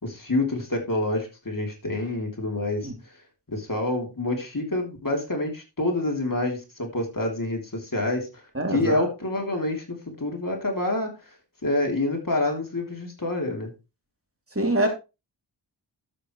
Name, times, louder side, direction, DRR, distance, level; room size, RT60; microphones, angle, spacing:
voice 1, 0.0-2.9 3.5-8.4 8.7-11.1 11.6-13.7, left 2 dB, 45° left, 2 dB, 3.2 m, -27 dB
voice 2, 8.5-9.0 14.5-14.9, right 1 dB, 30° right, 3 dB, 2.8 m, -24 dB
12.0 x 7.8 x 3.1 m, 0.27 s
wide cardioid pair, 55°, 45 cm